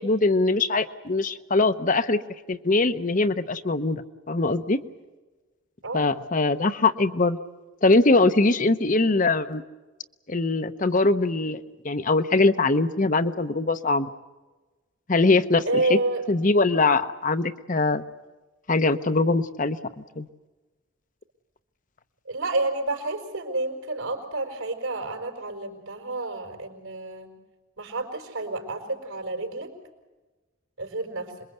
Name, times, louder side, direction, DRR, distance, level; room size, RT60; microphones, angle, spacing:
voice 1, 0.0-2.2 2.5-4.8 5.9-7.4 7.8-9.6 10.3-11.6 11.8-14.1 15.1-16.0 16.3-18.0 18.7-20.3, left 3 dB, 40° left, 11 dB, 0.8 m, -22 dB
voice 2, 15.6-16.2 22.3-27.3 27.8-29.7 30.8-31.3, right 2 dB, 80° right, 4 dB, 4.9 m, -29 dB
26.5 x 22.0 x 8.0 m, 1.2 s
head